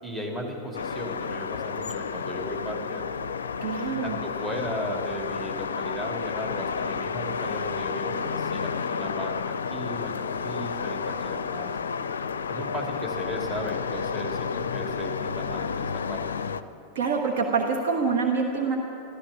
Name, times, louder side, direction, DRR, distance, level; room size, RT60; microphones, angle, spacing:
voice 1, 0.0-3.0 4.0-11.7 12.5-16.2, equal, 15° right, -1 dB, 2.8 m, -35 dB
sound 1, 0.7-16.6, left 6 dB, 70° left, 0.4 m, -31 dB
voice 2, 3.6-4.2 16.9-18.8, right 5 dB, 60° right, 2 dB, 1.4 m, -26 dB
13.5 x 13.5 x 6.9 m, 2.7 s
figure-of-eight pair, 90°, 0 cm